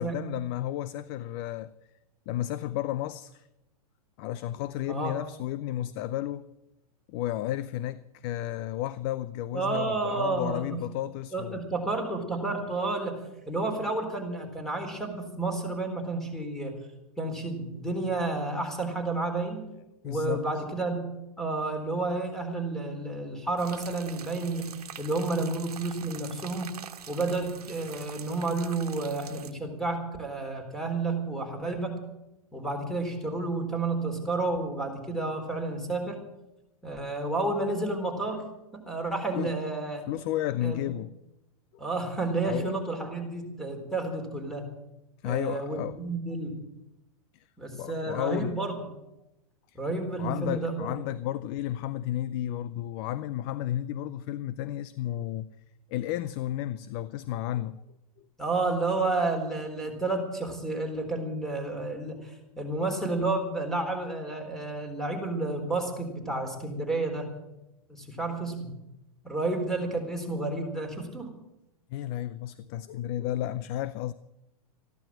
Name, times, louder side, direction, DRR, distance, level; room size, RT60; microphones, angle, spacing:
voice 1, 0.0-1.7 2.3-3.4 4.2-6.5 7.1-11.6 20.0-20.6 22.8-22.9 39.3-39.5 40.1-41.2 42.4-42.7 43.7-43.8 45.2-46.0 47.7-48.6 50.2-55.5 55.9-57.8 71.9-74.1, left 13 dB, 40° left, 0.6 m, -32 dB
voice 2, 9.5-10.8 11.3-13.2 13.5-16.7 17.2-19.6 20.0-21.0 21.4-24.7 25.0-26.7 27.1-32.0 32.5-36.2 36.8-38.4 38.7-40.2 40.6-40.9 41.8-44.7 45.2-46.5 47.6-48.7 49.7-51.0 58.4-67.3 67.9-68.7 69.2-71.3, right 3 dB, ahead, 3.8 m, -31 dB
sound 1, 23.6-29.5, right 8 dB, 85° right, 1.5 m, -45 dB
14.5 x 12.0 x 7.7 m
hypercardioid pair, 130°, 19 cm